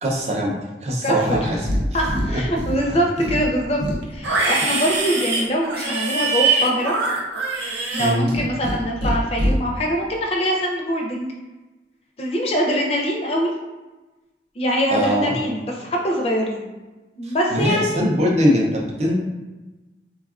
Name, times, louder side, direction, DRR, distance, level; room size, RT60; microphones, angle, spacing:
voice 1, 0.0-0.5 0.8-1.6 1.9-2.1 2.3-2.4 2.9-3.0 8.0-8.3 14.9-15.3 17.2-19.1, equal, 40° right, -2 dB, 0.5 m, -21 dB
voice 2, 1.0-1.5 1.9-3.8 4.1-7.0 7.9-11.3 12.2-13.5 14.6-16.7 17.2-18.0, equal, 35° left, 0 dB, 0.5 m, -23 dB
Livestock farm animals working animals, 1.2-1.8 2.1-2.8 3.2-8.8 9.0-9.5, right 2 dB, 85° right, 0.6 m, -23 dB
3.5 x 2.3 x 2.4 m, 1.1 s
head